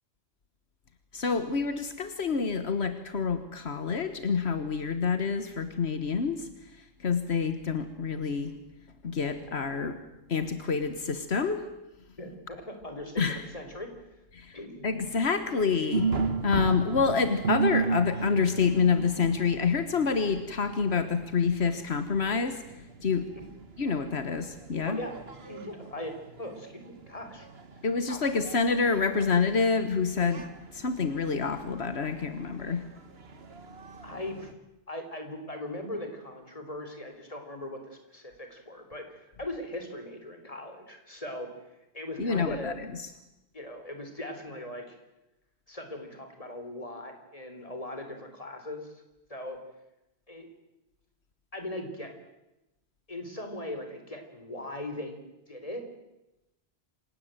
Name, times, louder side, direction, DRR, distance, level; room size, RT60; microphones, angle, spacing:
voice 1, 1.1-6.5 7.0-8.5 9.0-10.0 10.3-11.6 13.2-13.4 14.3-14.5 14.8-16.1 16.4-22.6 23.0-23.3 23.8-25.0 27.8-30.4 30.7-32.8 42.2-42.7, left 5 dB, 80° left, 10 dB, 1.6 m, -27 dB
voice 2, 12.2-13.9 14.5-14.9 24.8-25.2 25.4-27.5 28.1-28.2 34.0-34.5 34.9-41.5 41.9-42.8 43.5-45.0 45.7-49.0 49.3-49.6 50.3-50.5 51.5-52.1 53.1-55.2 55.5-55.8, left 1 dB, 35° left, 6 dB, 3.8 m, -39 dB
sound 1, 15.9-34.5, right 4 dB, 70° right, 1.7 m, -36 dB
27.0 x 16.5 x 9.0 m, 0.96 s
omnidirectional pair, 1.1 m